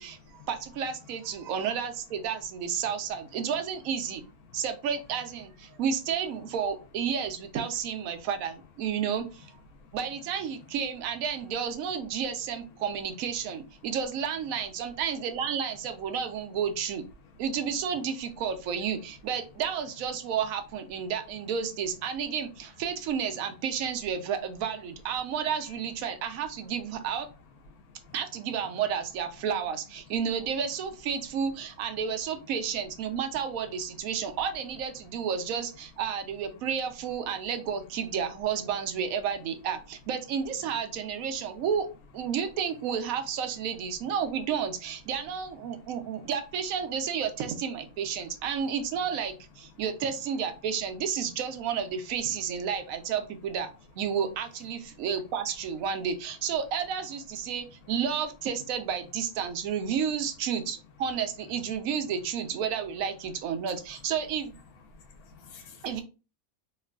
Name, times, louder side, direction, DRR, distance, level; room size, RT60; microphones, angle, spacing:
voice 1, 0.0-4.2 4.5-9.5 9.9-17.0 17.4-27.3 28.1-41.9 42.1-53.7 54.0-64.5 65.8-66.0, right 7 dB, 75° right, 1.0 m, -31 dB
voice 2, 27.7-28.4 33.1-33.2 34.3-34.4 36.6-36.7 45.7-46.1 49.7-49.8 54.9-55.0 57.6-57.9 63.6-64.0 64.9-66.0, left 4 dB, 90° left, 1.2 m, -53 dB
3.0 x 2.4 x 2.3 m
omnidirectional pair, 1.5 m